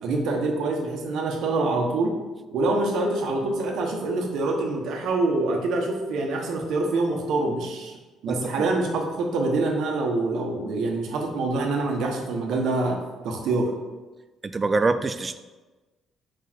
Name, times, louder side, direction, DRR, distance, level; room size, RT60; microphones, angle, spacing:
voice 1, 0.0-2.1 2.5-7.9 8.2-13.0 13.2-13.7, right 2 dB, 65° right, 1 dB, 1.3 m, -25 dB
voice 2, 14.4-15.4, right 3 dB, 20° right, 11 dB, 0.3 m, -24 dB
4.9 x 4.6 x 6.2 m, 1.2 s
cardioid pair, 170°, 0 cm